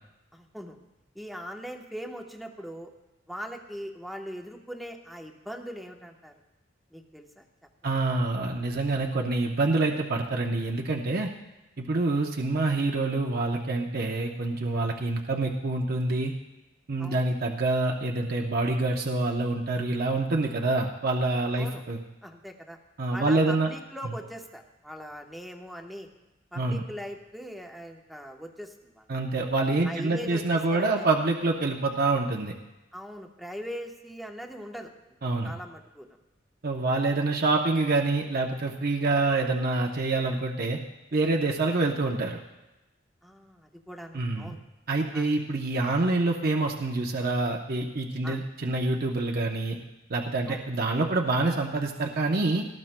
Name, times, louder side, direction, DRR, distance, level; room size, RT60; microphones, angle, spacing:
voice 1, 0.3-0.8 1.1-2.9 3.3-6.3 6.9-7.4 7.8-7.9 17.0-17.2 21.6-21.8 22.2-22.8 23.1-26.1 26.5-29.1 29.8-30.4 30.7-31.0 32.9-34.9 35.4-36.2 36.8-37.0 43.2-44.6 45.1-45.3 48.2-48.4 50.5-50.6, equal, ahead, 2 dB, 1.0 m, -40 dB
voice 2, 7.8-11.3 11.8-16.3 16.9-22.0 23.0-23.7 26.6-26.8 29.1-32.5 35.2-35.5 36.6-40.8 41.1-42.4 44.1-44.6 44.9-49.8 50.1-52.7, right 2 dB, 55° right, 1 dB, 0.8 m, -26 dB
18.0 x 14.0 x 2.2 m, 1.0 s
head